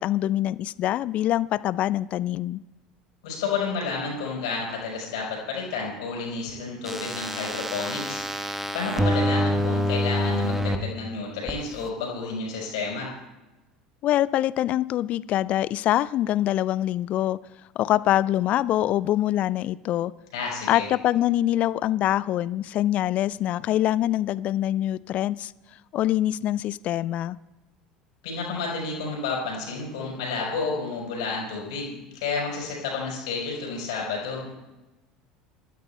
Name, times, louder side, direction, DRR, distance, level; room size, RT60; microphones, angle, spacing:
voice 1, 0.0-2.6 14.0-17.4 17.8-20.1 20.7-25.5 25.9-27.4, left 13 dB, 40° left, 19 dB, 0.4 m, -24 dB
voice 2, 3.2-8.2 8.7-13.1 20.3-20.9 28.2-34.5, left 4 dB, 60° left, -2 dB, 4.5 m, -31 dB
sound 1, 6.9-10.8 11.5-11.6, equal, 10° right, 1.2 m, -26 dB
27.0 x 13.5 x 2.2 m, 1.1 s
figure-of-eight pair, 70°, 3 cm